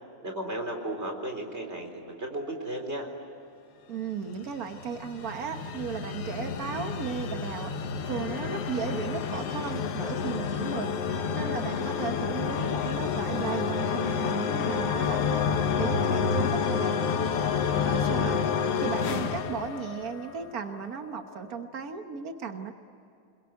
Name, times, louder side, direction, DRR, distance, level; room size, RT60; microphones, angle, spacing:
voice 1, 0.2-3.1 17.9-18.4, right 1 dB, 20° right, 3 dB, 4.1 m, -35 dB
voice 2, 3.9-7.7 8.0-10.9 11.3-15.4 15.8-17.0 17.7-18.3 18.8-22.7, right 6 dB, 65° right, 6 dB, 0.9 m, -35 dB
sound 1, 4.4-20.5, left 6 dB, 60° left, 2.0 m, -29 dB
28.0 x 22.0 x 9.5 m, 2.7 s
omnidirectional pair, 3.5 m